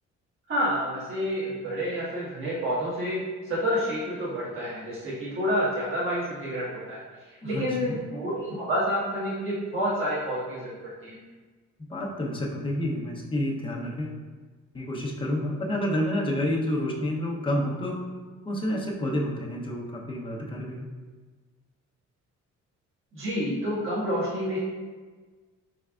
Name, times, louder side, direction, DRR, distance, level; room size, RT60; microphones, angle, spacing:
voice 1, 0.5-7.0 7.3-11.2 23.1-24.6, equal, 45° right, -10 dB, 1.4 m, -29 dB
voice 2, 7.4-8.0 11.9-14.2 14.7-18.0 18.4-20.9, left 1 dB, 15° left, -3 dB, 0.8 m, -29 dB
4.6 x 3.4 x 2.4 m, 1.4 s
cardioid pair, 90°, 30 cm